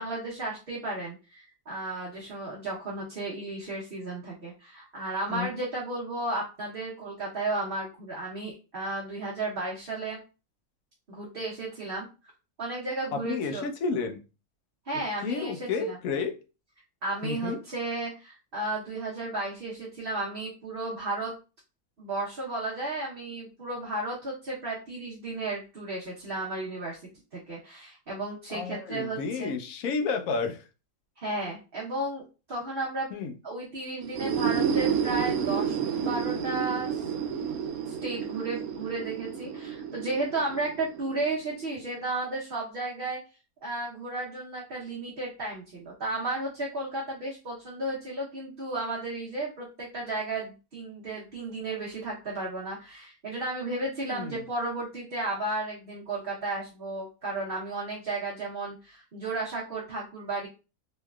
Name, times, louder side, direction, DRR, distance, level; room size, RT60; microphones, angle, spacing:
voice 1, 0.0-10.2 11.1-12.1 12.6-13.7 14.9-16.0 17.0-21.4 22.0-27.0 27.3-29.5 31.2-33.1 33.4-35.8 36.0-37.0 37.9-43.2 43.6-60.5, right 2 dB, 45° right, 1.0 m, -33 dB
voice 2, 13.1-14.2 15.2-16.3 17.2-17.6 28.5-30.6 33.1-33.3 54.1-54.4, left 5 dB, 75° left, 1.0 m, -31 dB
sound 1, 34.0-41.7, right 7 dB, 90° right, 1.1 m, -30 dB
3.4 x 3.1 x 2.3 m
omnidirectional pair, 1.5 m